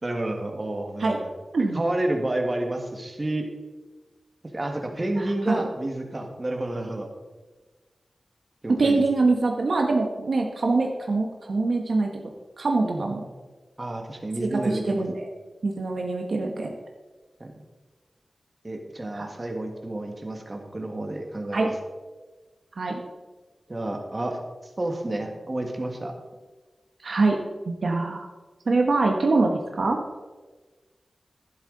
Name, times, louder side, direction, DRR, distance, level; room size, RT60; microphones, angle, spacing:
voice 1, 0.0-1.3 1.7-3.5 4.5-7.1 8.6-9.0 12.8-13.2 13.8-15.0 17.4-17.5 18.6-21.7 23.7-24.4 24.8-26.1, right 1 dB, 30° right, 3 dB, 1.7 m, -30 dB
voice 2, 5.2-5.6 8.7-13.2 14.4-15.3 15.6-16.7 19.1-19.3 21.5-21.7 22.8-23.0 27.0-27.4 27.7-28.3 28.7-30.0, right 3 dB, 65° right, 2 dB, 1.1 m, -24 dB
11.5 x 11.5 x 3.9 m, 1.3 s
wide cardioid pair, 90°, 0 cm